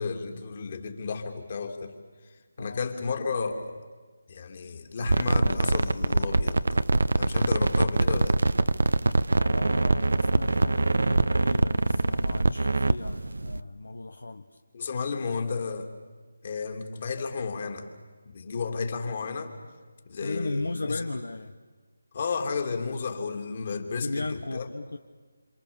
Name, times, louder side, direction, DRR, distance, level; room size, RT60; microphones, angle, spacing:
voice 1, 0.0-2.0 2.6-3.8 4.3-6.6 7.2-8.4 14.7-15.9 16.4-17.9 18.3-19.5 20.1-21.0 22.1-24.7, left 4 dB, 40° left, 4 dB, 3.0 m, -32 dB
sound 1, 5.0-13.6, right 2 dB, 65° right, 0.8 m, -24 dB
voice 2, 9.4-14.5 20.2-21.6 24.0-25.0, left 2 dB, 70° left, 7 dB, 1.1 m, -35 dB
27.5 x 27.0 x 7.2 m, 1.4 s
figure-of-eight pair, 155°, 0 cm